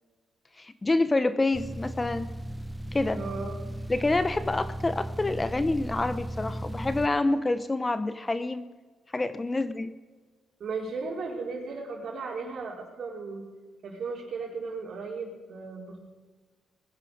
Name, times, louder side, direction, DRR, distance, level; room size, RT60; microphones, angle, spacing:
voice 1, 0.6-2.3 2.9-3.2 3.9-8.7 9.1-9.9, left 2 dB, 20° left, 12 dB, 0.7 m, -27 dB
sound 1, 1.5-7.1, right 1 dB, 5° right, 0.5 m, -36 dB
voice 2, 3.1-3.8 10.6-13.4 13.8-16.0, right 4 dB, 55° right, -1 dB, 4.5 m, -36 dB
20.5 x 9.9 x 5.0 m, 1.4 s
cardioid pair, 90°, 0 cm